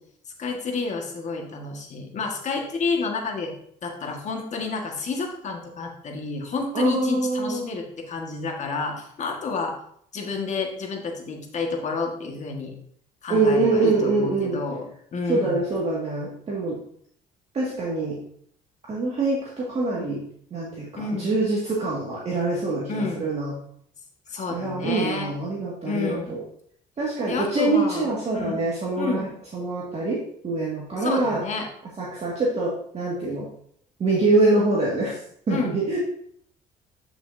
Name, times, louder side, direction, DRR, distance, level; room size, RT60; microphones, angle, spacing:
voice 1, 0.4-3.5 3.8-9.7 10.1-12.7 13.2-15.6 21.0-21.3 22.9-23.2 24.3-25.3 25.8-26.4 27.3-28.6 29.0-29.3 31.0-31.7 35.5-35.8, left 4 dB, 45° left, 1 dB, 1.7 m, -30 dB
voice 2, 6.7-7.6 13.3-14.6 15.3-16.8 17.5-18.2 18.9-20.2 20.5-23.5 24.5-26.4 27.0-30.2 30.4-31.4 32.0-33.5 34.0-35.2 35.5-36.0, right 3 dB, 40° right, -5 dB, 2.1 m, -24 dB
9.5 x 5.8 x 2.7 m, 0.64 s
cardioid pair, 110°, 17 cm